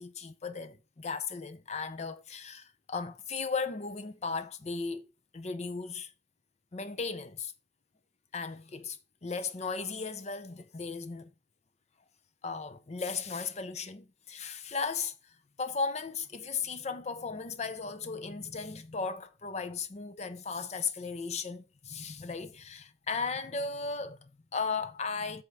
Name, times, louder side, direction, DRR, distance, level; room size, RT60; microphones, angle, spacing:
voice 1, 0.0-5.0 5.3-6.1 6.7-7.5 8.3-11.3 12.4-15.1 15.6-25.4, left 4 dB, 40° left, 0.6 m, -36 dB
8.1 x 3.6 x 5.5 m
head